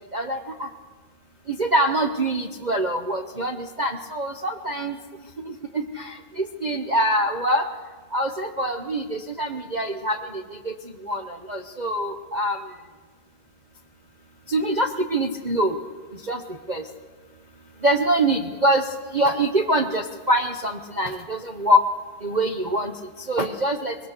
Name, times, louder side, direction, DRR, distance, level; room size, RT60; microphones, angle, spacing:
voice 1, 0.1-0.7 1.5-5.0 5.7-7.7 8.1-10.2 10.6-10.7 11.0-12.6 14.5-15.8 16.3-16.4 16.7-16.8 17.8-18.8 19.1-21.8 22.2-22.9 23.3-24.0, right 1 dB, 75° right, 4 dB, 0.4 m, -24 dB
24.5 x 21.0 x 6.7 m, 1.4 s
omnidirectional pair, 2.3 m